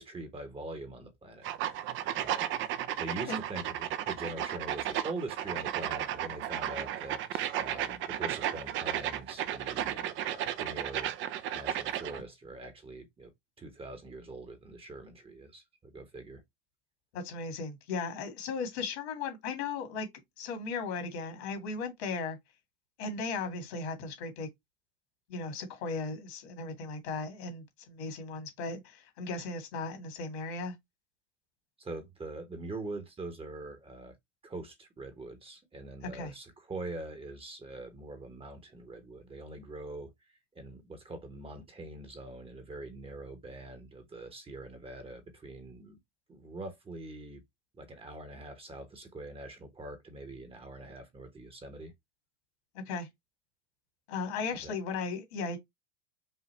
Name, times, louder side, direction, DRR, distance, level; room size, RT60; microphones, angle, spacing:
voice 1, 0.0-2.5 3.0-11.1 11.5-13.3 13.6-16.4 31.8-34.2 34.4-46.0 46.3-47.4 47.7-51.9 54.6-54.7, right 2 dB, 15° right, 1.1 m, -43 dB
sound 1, 1.4-12.2, right 11 dB, 35° right, 0.6 m, -34 dB
voice 2, 17.1-20.1 20.4-22.4 23.0-24.5 25.3-30.8 36.0-36.3 52.7-53.1 54.1-55.6, left 4 dB, 65° left, 2.2 m, -36 dB
5.5 x 2.5 x 3.2 m
hypercardioid pair, 100°, 34 cm